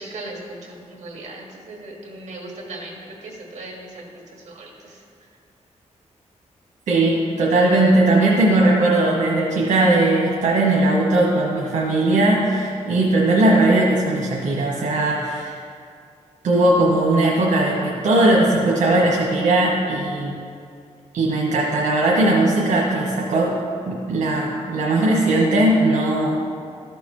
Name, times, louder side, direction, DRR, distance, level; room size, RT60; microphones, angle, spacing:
voice 1, 0.0-5.0, right 2 dB, 70° right, -1 dB, 1.8 m, -38 dB
voice 2, 6.9-15.6 16.4-20.3 21.1-23.6 23.9-26.4, right 2 dB, 90° right, -4 dB, 1.3 m, -18 dB
13.5 x 6.9 x 3.2 m, 2.3 s
wide cardioid pair, 140°, 12 cm